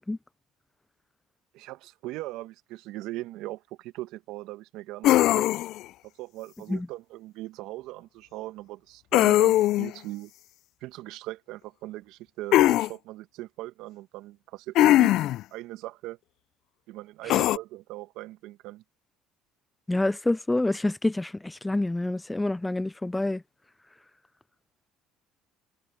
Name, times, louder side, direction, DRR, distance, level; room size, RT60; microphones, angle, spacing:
voice 1, 1.5-5.5 6.2-10.3 10.8-15.1 15.5-16.2 16.9-18.8, right 17 dB, 70° right, 1.7 m, -39 dB
sound 1, 5.0-5.8 9.1-9.9 12.5-12.9 14.8-15.4 17.3-17.6, left 15 dB, 65° left, 0.6 m, -20 dB
voice 2, 19.9-23.4, left 2 dB, 10° left, 0.6 m, -27 dB
hypercardioid pair, 65°, 0 cm